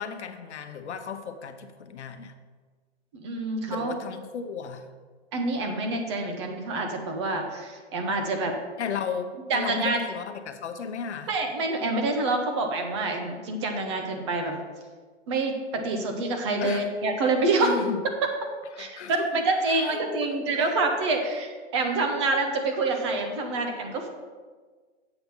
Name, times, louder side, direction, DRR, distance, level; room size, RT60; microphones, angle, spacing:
voice 1, 0.0-2.3 3.7-4.9 8.8-11.3 16.6-16.9 17.6-18.0 18.7-21.2, left 6 dB, 75° left, 8 dB, 1.0 m, -35 dB
voice 2, 3.1-3.9 5.3-8.5 9.5-10.0 11.3-14.6 15.3-17.8 18.8-24.1, right 3 dB, 25° right, 4 dB, 0.8 m, -27 dB
7.9 x 5.9 x 5.5 m, 1.4 s
hypercardioid pair, 165°, 34 cm